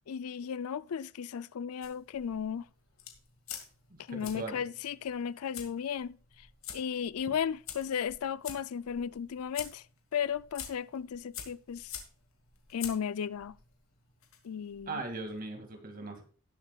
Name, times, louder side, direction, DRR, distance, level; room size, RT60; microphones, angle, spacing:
voice 1, 0.1-2.7 4.0-6.5 6.7-9.8 10.1-12.0 12.7-13.6 14.4-15.0, left 7 dB, 85° left, 0.4 m, -35 dB
sound 1, 1.8-15.4, left 9 dB, 70° left, 2.0 m, -48 dB
voice 2, 3.9-4.6 14.9-16.2, right 3 dB, 40° right, 2.2 m, -39 dB
18.0 x 7.4 x 2.3 m
head